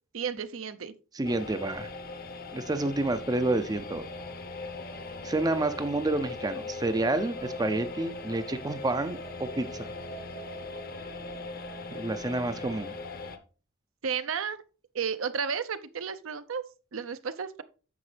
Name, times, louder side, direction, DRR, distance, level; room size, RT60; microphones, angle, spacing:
voice 1, 0.1-0.9 14.0-14.6 14.9-16.6 16.9-17.6, right 6 dB, 65° right, 0.6 m, -32 dB
voice 2, 1.1-1.9 2.5-4.0 5.2-9.9 11.9-12.9, right 2 dB, 20° right, 0.5 m, -29 dB
sound 1, 1.2-13.4, left 3 dB, 45° left, 0.9 m, -40 dB
9.6 x 7.0 x 3.3 m
head